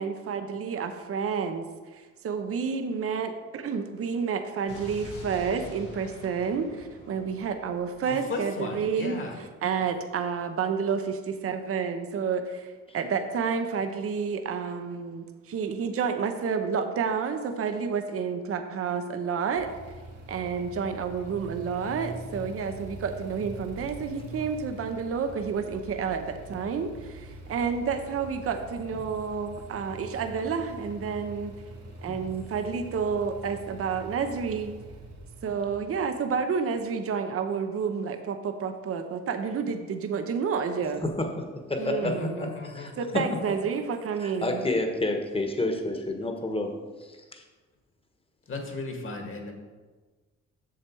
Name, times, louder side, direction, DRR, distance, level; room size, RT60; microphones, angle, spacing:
voice 1, 0.0-1.7 1.9-19.7 20.3-31.5 32.0-34.7 35.4-41.0 41.8-42.5 43.0-44.7, right 6 dB, 50° right, 7 dB, 0.8 m, -30 dB
Explosion, 4.7-8.7, left 2 dB, 85° left, 1.9 m, -46 dB
voice 2, 8.1-9.4 42.0-43.1 48.5-49.5, left 2 dB, 45° left, 2 dB, 1.9 m, -35 dB
sound 1, 19.5-36.8, right 1 dB, 75° right, 2.3 m, -44 dB
voice 3, 41.0-42.5 42.7-43.2 44.2-46.7 47.0-47.4, left 2 dB, 20° left, 4 dB, 1.3 m, -30 dB
7.6 x 6.6 x 4.6 m, 1.3 s
cardioid pair, 90°, 30 cm